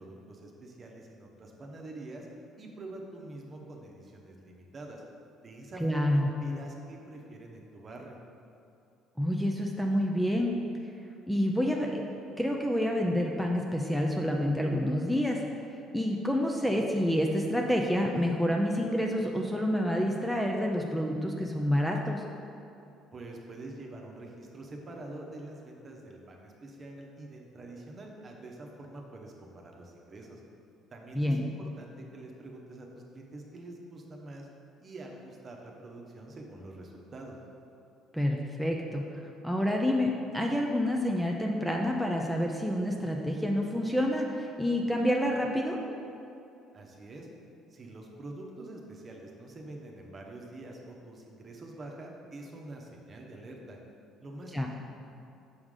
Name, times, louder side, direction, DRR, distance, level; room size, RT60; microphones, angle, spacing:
voice 1, 0.0-2.3 2.6-5.0 5.4-8.2 23.1-30.4 30.9-34.5 34.8-37.4 46.7-47.3 47.7-53.8 54.2-54.7, right 2 dB, 40° right, 0 dB, 1.0 m, -45 dB
voice 2, 5.8-6.3 9.2-10.5 11.3-12.0 12.4-15.4 15.9-22.2 31.1-31.5 38.1-45.8 54.5-54.7, equal, ahead, 0 dB, 0.6 m, -28 dB
6.3 x 4.7 x 3.7 m, 2.7 s
supercardioid pair, 70°, 0 cm